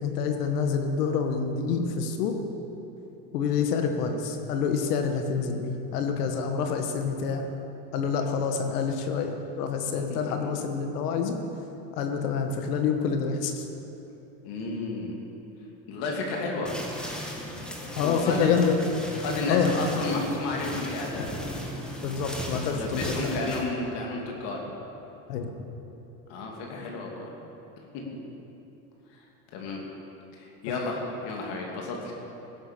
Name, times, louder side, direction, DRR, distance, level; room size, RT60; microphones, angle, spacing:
voice 1, 0.0-2.4 3.3-7.5 7.9-11.4 12.0-13.7 18.0-18.8 19.5-19.7 22.0-23.3 25.3-25.5, left 6 dB, 85° left, 5 dB, 1.5 m, -27 dB
voice 2, 14.4-15.1 15.9-16.7 17.5-17.6 18.0-18.5 19.1-21.3 22.6-24.6 26.3-27.3 29.1-29.2 29.5-29.8 30.3-32.1, left 3 dB, 65° left, -1 dB, 2.8 m, -31 dB
sound 1, 16.7-23.6, equal, ahead, 1.9 m, -37 dB
16.5 x 7.8 x 6.8 m, 3.0 s
supercardioid pair, 100°, 45 cm